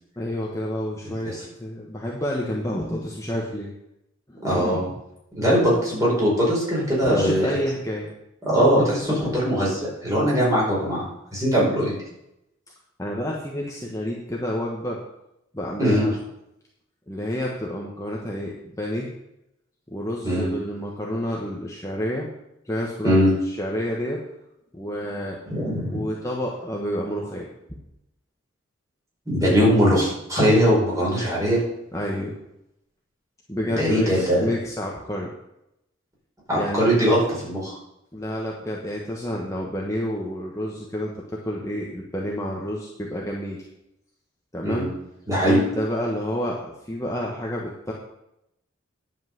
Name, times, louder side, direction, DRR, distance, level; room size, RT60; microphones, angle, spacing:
voice 1, 0.2-1.3 1.6-3.7 4.3-4.8 7.0-8.1 13.0-15.0 15.5-16.1 17.1-19.1 19.9-22.3 22.6-24.2 24.7-25.4 25.9-27.5 31.9-32.4 33.5-35.3 36.5-37.0 38.1-43.6 44.5-44.9 45.4-47.9, equal, 15° left, -2 dB, 1.2 m, -29 dB
voice 2, 4.4-4.8 5.4-7.6 8.5-11.9 15.8-16.1 20.2-20.5 23.0-23.3 25.5-26.0 29.3-31.6 33.8-34.5 36.5-37.8 44.6-44.9 45.3-45.6, equal, 15° right, -6 dB, 5.0 m, -21 dB
10.5 x 5.6 x 7.9 m, 0.84 s
head